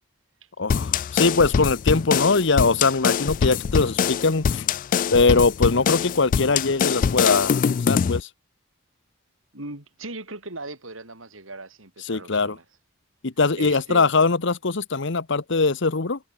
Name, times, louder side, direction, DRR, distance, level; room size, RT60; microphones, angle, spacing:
voice 1, 0.6-4.7 5.1-8.3 12.0-12.6 13.2-16.2, left 4 dB, 65° left, 1.1 m, -21 dB
sound 1, 0.7-8.2, left 7 dB, 40° left, 0.3 m, -23 dB
voice 2, 9.5-12.6 13.6-14.1, right 2 dB, 75° right, 6.3 m, -38 dB
head